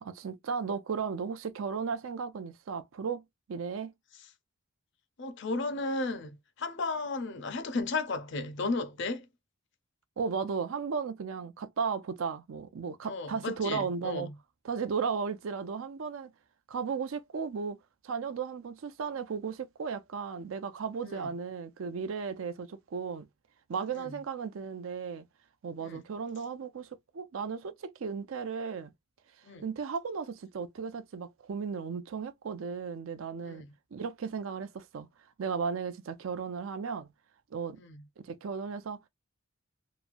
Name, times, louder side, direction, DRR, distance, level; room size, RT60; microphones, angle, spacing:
voice 1, 0.0-3.2 3.5-3.9 10.2-14.3 14.6-16.3 16.7-17.8 18.0-23.3 23.7-25.2 25.6-28.9 29.6-33.6 33.9-35.1 35.4-37.1 37.5-37.8 38.2-39.0, right 5 dB, 70° right, 0.4 m, -35 dB
voice 2, 5.2-9.3 13.0-14.3 21.0-21.3 23.9-24.2 25.8-26.0 29.5-29.6 33.5-33.7 37.8-38.0, left 3 dB, 55° left, 0.5 m, -34 dB
3.0 x 2.2 x 2.5 m
head